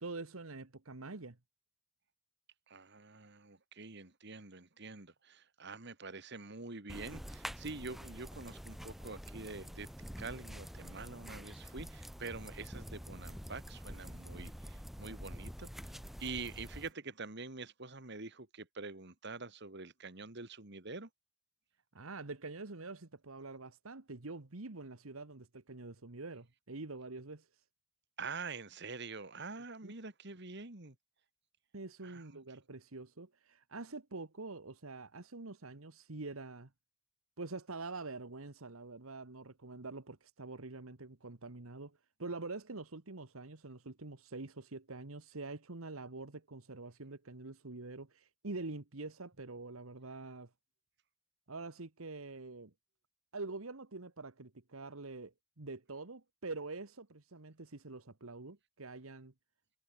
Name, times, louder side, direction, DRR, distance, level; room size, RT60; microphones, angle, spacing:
voice 1, 0.0-1.4 21.9-27.4 29.8-29.9 31.7-36.7 37.4-50.5 51.5-52.7 53.3-59.3, right 3 dB, 85° right, 1.5 m, -46 dB
voice 2, 2.7-21.1 28.2-31.0 32.0-32.4, right 4 dB, 55° right, 2.2 m, -46 dB
sound 1, 6.9-16.9, equal, ahead, 1.1 m, -47 dB
head